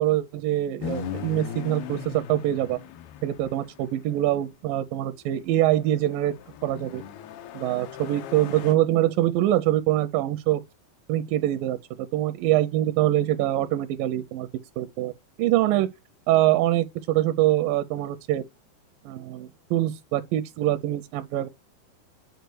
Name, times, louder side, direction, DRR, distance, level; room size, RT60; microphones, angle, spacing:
voice 1, 0.0-2.8 3.2-6.3 6.6-7.0 7.5-10.6 11.1-14.5 14.8-15.1 15.4-15.9 16.3-18.4 19.1-21.5, right 14 dB, 80° right, 2.0 m, -24 dB
sound 1, 0.8-4.3 5.5-8.8, left 8 dB, 90° left, 2.8 m, -38 dB
8.0 x 4.5 x 4.6 m
omnidirectional pair, 4.3 m